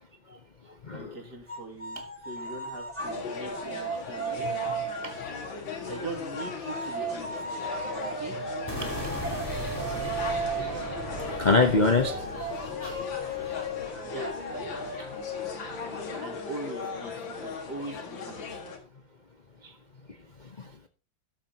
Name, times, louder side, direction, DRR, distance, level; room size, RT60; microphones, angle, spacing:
voice 1, 0.9-4.6 5.9-7.6 8.0-8.4 14.0-15.1 16.2-17.1 17.4-18.6, right 2 dB, 55° right, 3.0 m, -41 dB
sound 1, 1.5-5.4 6.4-17.7, right 2 dB, 5° right, 3.3 m, -36 dB
sound 2, 3.0-18.8, left 5 dB, 75° left, 2.7 m, -38 dB
sound 3, 8.7-14.7, left 1 dB, 10° left, 4.8 m, -38 dB
voice 2, 11.4-12.4 12.8-13.0 14.9-15.0 15.4-15.6 19.6-19.7, left 3 dB, 40° left, 0.6 m, -26 dB
13.5 x 11.5 x 2.9 m
omnidirectional pair, 2.1 m